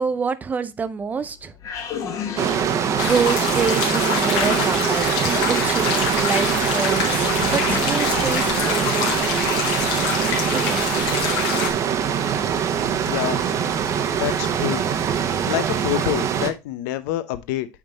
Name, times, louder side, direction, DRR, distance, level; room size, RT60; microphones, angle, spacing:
voice 1, 0.0-1.5 2.9-9.2 10.5-11.1, right 5 dB, 15° right, 0.4 m, -27 dB
sound 1, 1.0-10.1, left 6 dB, 35° left, 1.2 m, -35 dB
sound 2, 2.4-16.5, right 8 dB, 30° right, 0.8 m, -23 dB
sound 3, 3.0-11.7, left 7 dB, 65° left, 2.2 m, -26 dB
voice 2, 13.0-13.4 14.1-14.8 15.5-17.7, left 14 dB, 85° left, 0.8 m, -26 dB
8.6 x 3.8 x 3.9 m
cardioid pair, 165°, 10 cm